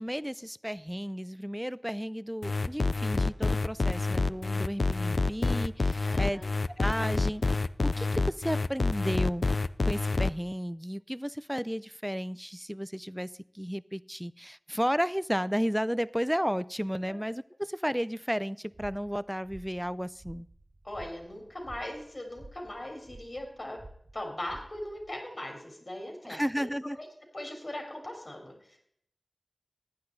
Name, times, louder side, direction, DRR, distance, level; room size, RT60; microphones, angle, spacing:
voice 1, 0.0-6.4 6.8-9.5 9.9-20.5 26.2-27.0, equal, 5° right, 19 dB, 0.3 m, -33 dB
sound 1, 2.4-10.3, left 3 dB, 80° left, 0.3 m, -27 dB
voice 2, 6.1-6.5 17.1-17.2 20.8-23.8 24.1-26.7 27.0-27.1 27.3-28.8, left 1 dB, 50° left, 2 dB, 3.7 m, -40 dB
sound 2, 18.7-25.1, right 2 dB, 55° right, 1.0 m, -52 dB
15.0 x 9.6 x 4.0 m, 0.67 s
wide cardioid pair, 55°, 0 cm